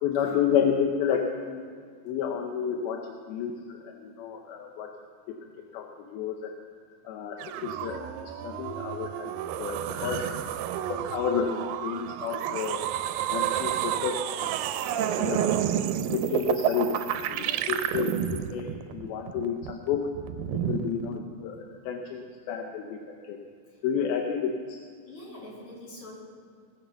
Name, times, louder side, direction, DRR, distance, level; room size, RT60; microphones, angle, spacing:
voice 1, 0.0-1.6 2.0-4.9 5.3-5.4 5.7-6.5 7.1-9.3 9.6-10.2 10.9-12.8 13.3-14.5 14.8-15.6 16.1-17.0 17.3-20.0 20.5-23.4 23.8-24.8, left 7 dB, 80° left, 3 dB, 2.6 m, -31 dB
sound 1, 7.4-21.2, right 10 dB, 80° right, 2.2 m, -30 dB
voice 2, 20.6-20.9 25.1-26.2, left 1 dB, 50° left, -5 dB, 4.6 m, -44 dB
19.5 x 7.4 x 7.0 m, 2.1 s
omnidirectional pair, 4.3 m